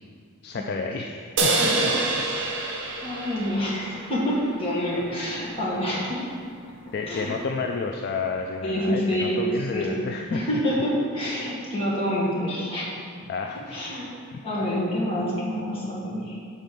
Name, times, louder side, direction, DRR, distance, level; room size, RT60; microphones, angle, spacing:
voice 1, 0.4-1.7 6.9-10.4 13.3-13.8 14.3-14.4, left 4 dB, 50° left, 3 dB, 0.3 m, -30 dB
sound 1, 1.4-4.8, right 3 dB, 60° right, 0.8 m, -27 dB
voice 2, 3.0-6.3 7.1-7.3 8.6-9.4 9.7-9.9 10.3-12.9 13.7-14.1 14.4-16.4, equal, 25° left, -6 dB, 1.7 m, -27 dB
7.6 x 4.2 x 5.3 m, 2.3 s
head